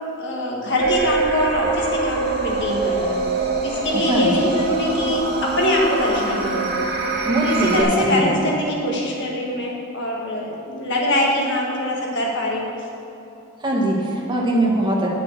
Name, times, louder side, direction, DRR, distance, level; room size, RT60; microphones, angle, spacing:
voice 1, 0.2-3.2 3.6-6.8 7.4-12.7, left 1 dB, 60° left, -2 dB, 1.7 m, -23 dB
sound 1, 0.8-7.8, right 4 dB, 50° right, 0.9 m, -24 dB
voice 2, 3.9-4.3 7.2-8.3 13.6-15.1, right 1 dB, 20° right, -3 dB, 1.5 m, -21 dB
7.2 x 6.9 x 6.6 m, 2.9 s
head